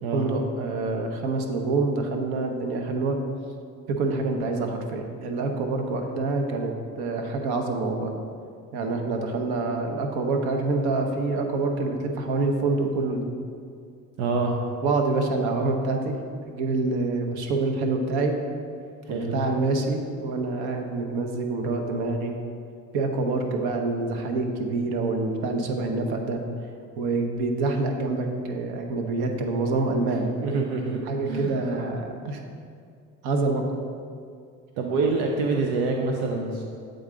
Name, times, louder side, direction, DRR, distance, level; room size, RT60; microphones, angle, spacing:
voice 1, 0.1-3.2 4.0-8.1 8.7-13.3 14.8-16.1 16.5-18.3 19.1-22.3 22.9-26.4 27.0-30.3 31.1-32.4 33.2-33.6, right 3 dB, 65° right, 3 dB, 0.9 m, -26 dB
voice 2, 14.2-14.5 19.1-19.3 30.4-31.0 31.3-31.5 34.8-36.6, right 3 dB, 80° right, 1 dB, 0.6 m, -26 dB
7.9 x 3.8 x 3.8 m, 2.3 s
hypercardioid pair, 70°, 40 cm